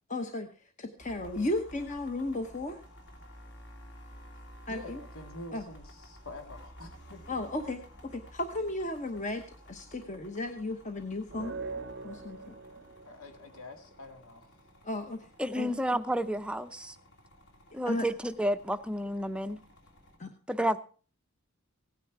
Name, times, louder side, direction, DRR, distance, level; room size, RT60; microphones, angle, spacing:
voice 1, 0.1-2.8 4.7-5.0 5.5-5.6 7.3-11.5 12.0-12.5 14.8-15.3 15.6-15.7 17.9-18.1 20.2-20.3, left 2 dB, 35° left, 1.0 m, -35 dB
sound 1, 1.0-20.2, equal, 55° left, 2.7 m, -53 dB
voice 2, 4.7-7.4 13.1-14.5, left 2 dB, 80° left, 2.1 m, -47 dB
sound 2, 11.3-14.0, right 3 dB, 50° right, 0.6 m, -42 dB
voice 3, 15.4-16.9 17.7-19.6 20.5-20.8, equal, 5° right, 0.6 m, -30 dB
16.5 x 9.8 x 4.6 m
head